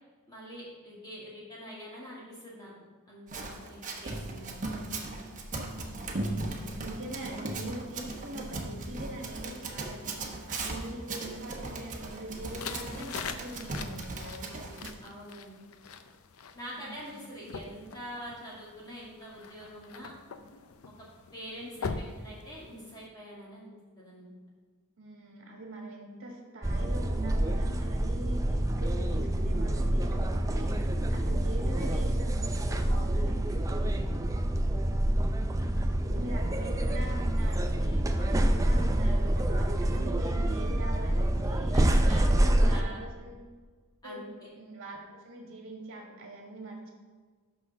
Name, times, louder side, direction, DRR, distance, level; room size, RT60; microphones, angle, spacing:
voice 1, 0.3-2.7 3.1-4.4 6.7-6.9 14.5-15.7 16.5-20.1 21.3-21.9 22.2-23.7 24.0-24.3 32.8-34.1 41.7-43.0 44.0-44.5, equal, 20° left, -6 dB, 1.7 m, -45 dB
Run, 3.3-14.9, right 2 dB, 35° right, 1.0 m, -38 dB
voice 2, 4.0-4.6 5.6-6.4 6.7-10.1 10.5-14.7 16.7-17.1 21.7-22.1 25.0-30.7 31.1-33.6 35.2-41.9 42.5-43.4 44.0-44.2 44.6-46.9, right 1 dB, 55° right, 0 dB, 1.5 m, -43 dB
sound 1, 12.3-23.1, left 5 dB, 75° left, 0.5 m, -43 dB
sound 2, 26.6-42.8, right 1 dB, 15° right, 0.4 m, -27 dB
6.3 x 5.9 x 6.0 m, 1.4 s
head